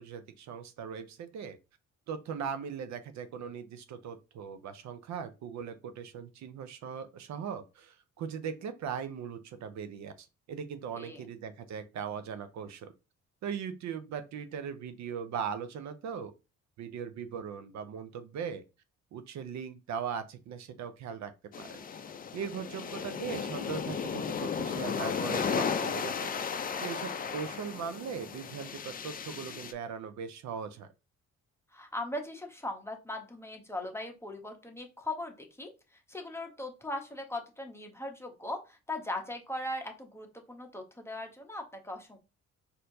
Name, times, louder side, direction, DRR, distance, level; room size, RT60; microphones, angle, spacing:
voice 1, 0.0-1.6 2.1-12.9 13.4-16.3 16.8-18.6 19.1-21.3 21.6-21.8 22.3-26.3 26.8-30.9, right 7 dB, 65° right, 10 dB, 0.6 m, -39 dB
sound 1, 21.5-29.7, left 6 dB, 30° left, 0.4 m, -35 dB
voice 2, 31.7-35.7 36.1-42.2, left 1 dB, 10° left, 3 dB, 0.8 m, -39 dB
4.3 x 2.6 x 2.7 m, 0.29 s
cardioid pair, 90°, 30 cm